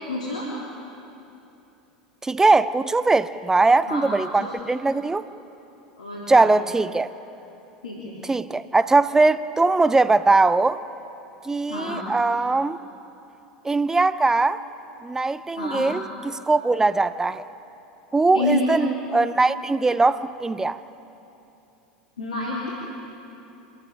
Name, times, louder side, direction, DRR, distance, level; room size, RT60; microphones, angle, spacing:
voice 1, 0.1-0.5 3.9-4.0 4.3-4.5 6.0-6.5 7.8-8.2 11.7-12.0 15.6-15.8 18.3-18.7 22.2-22.7, left 2 dB, 80° left, 3.7 m, -28 dB
voice 2, 2.2-5.2 6.3-7.1 8.3-10.8 11.4-12.8 13.6-14.6 15.0-17.4 18.1-20.8, right 3 dB, 15° right, 0.7 m, -20 dB
26.0 x 14.5 x 9.9 m
hypercardioid pair, 85°, 4 cm